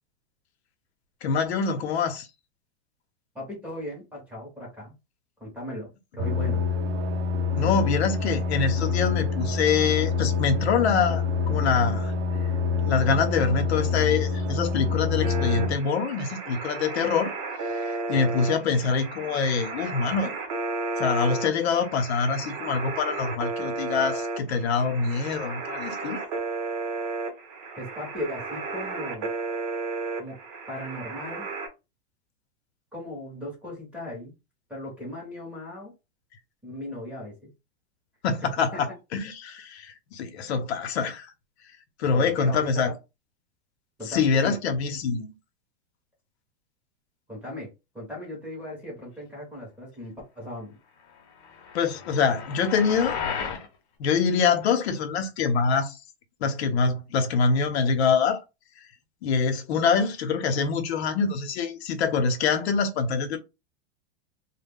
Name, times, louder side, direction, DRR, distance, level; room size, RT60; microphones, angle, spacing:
voice 1, 1.2-2.3 7.6-12.1 12.8-17.4 18.1-20.3 21.0-26.2 38.2-38.9 39.1-41.3 42.0-42.9 44.1-45.3 51.7-53.2 54.0-56.0 56.4-58.4 59.2-63.4, left 5 dB, 75° left, 0.7 m, -25 dB
voice 2, 3.3-4.9 5.4-6.6 27.8-29.3 30.2-30.4 30.7-31.5 32.9-34.3 34.7-35.9 36.6-37.5 38.7-38.8 42.1-42.9 44.0-44.6 47.3-47.7 47.9-50.8, left 1 dB, 5° right, 0.7 m, -37 dB
sound 1, 6.2-15.8, left 5 dB, 75° right, 0.5 m, -26 dB
sound 2, 15.2-31.7, right 3 dB, 40° right, 0.7 m, -33 dB
sound 3, 51.4-53.7, left 6 dB, 40° left, 0.7 m, -34 dB
2.1 x 2.1 x 3.4 m
supercardioid pair, 170°, 33 cm